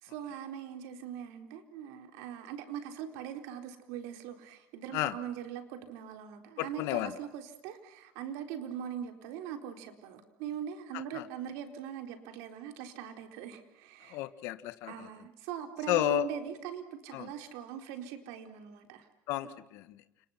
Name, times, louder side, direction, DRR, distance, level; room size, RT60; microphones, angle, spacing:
voice 1, 0.0-14.2 14.9-19.1 19.4-19.6, right 9 dB, 75° right, 6 dB, 4.2 m, -41 dB
voice 2, 6.6-7.1 11.1-11.2 14.1-15.1 15.9-16.3 17.1-17.3 19.3-20.0, left 16 dB, 65° left, 12 dB, 1.5 m, -32 dB
29.5 x 28.0 x 5.9 m, 0.84 s
cardioid pair, 165°, 5 cm